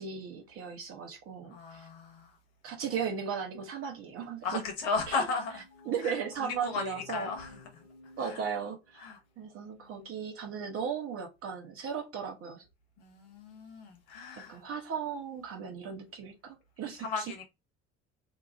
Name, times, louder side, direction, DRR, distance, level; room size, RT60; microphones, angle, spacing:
voice 1, 0.0-1.9 2.6-4.6 5.1-5.3 5.8-7.3 8.2-9.1 9.4-12.6 14.4-17.3, right 7 dB, 45° right, 1.1 m, -36 dB
voice 2, 1.5-2.3 4.4-5.6 6.0-7.8 8.2-8.4 9.0-9.2 9.8-10.1 13.0-14.6 17.0-17.4, left 4 dB, 65° left, 1.0 m, -36 dB
sound 1, 5.3-9.1, left 2 dB, 85° left, 0.6 m, -53 dB
2.9 x 2.2 x 2.7 m
figure-of-eight pair, 55°, 32 cm